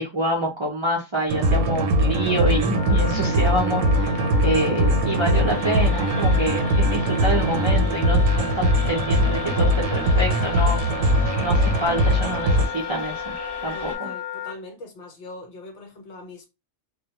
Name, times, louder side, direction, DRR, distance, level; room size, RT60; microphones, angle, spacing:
voice 1, 0.0-10.9 11.4-13.3 13.6-14.1, right 1 dB, 50° right, 0.3 m, -27 dB
sound 1, 1.3-12.7, equal, 90° right, 1.0 m, -21 dB
Wind instrument woodwind instrument, 2.3-14.6, left 7 dB, 25° right, 0.7 m, -34 dB
sound 2, 5.5-13.9, left 1 dB, 30° left, 0.5 m, -38 dB
voice 2, 13.7-16.5, left 2 dB, 65° left, 0.9 m, -41 dB
2.1 x 2.1 x 2.8 m
omnidirectional pair, 1.3 m